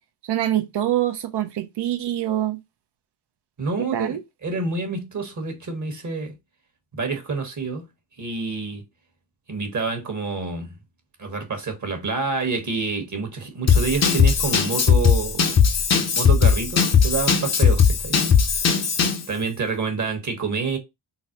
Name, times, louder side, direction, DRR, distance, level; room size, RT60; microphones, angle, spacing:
voice 1, 0.2-2.6 3.9-4.2, right 12 dB, 55° right, 0.7 m, -25 dB
voice 2, 3.6-6.4 6.9-7.9 8.2-8.8 9.5-10.7 11.2-15.4 16.1-18.2 19.3-20.8, right 4 dB, 40° right, 1.2 m, -28 dB
Drum kit / Drum, 13.7-19.3, left 6 dB, 35° left, 0.7 m, -18 dB
3.9 x 2.0 x 2.8 m
supercardioid pair, 50°, 47 cm